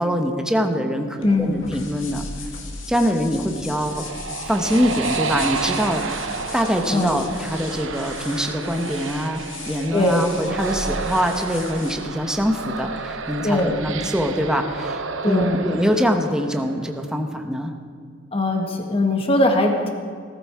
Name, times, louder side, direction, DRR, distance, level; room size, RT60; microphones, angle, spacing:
voice 1, 0.0-2.3 2.9-4.0 4.5-6.0 6.5-17.7, equal, 5° right, 4 dB, 1.1 m, -23 dB
sound 1, 1.2-13.6, left 3 dB, 80° left, 2.2 m, -37 dB
voice 2, 1.2-1.6 6.9-7.2 9.9-10.2 13.4-13.8 15.2-15.6 18.3-19.9, left 1 dB, 30° left, 3 dB, 1.9 m, -20 dB
sound 2, 3.5-17.1, right 5 dB, 75° right, 0.9 m, -31 dB
18.5 x 14.5 x 4.8 m, 2.1 s
head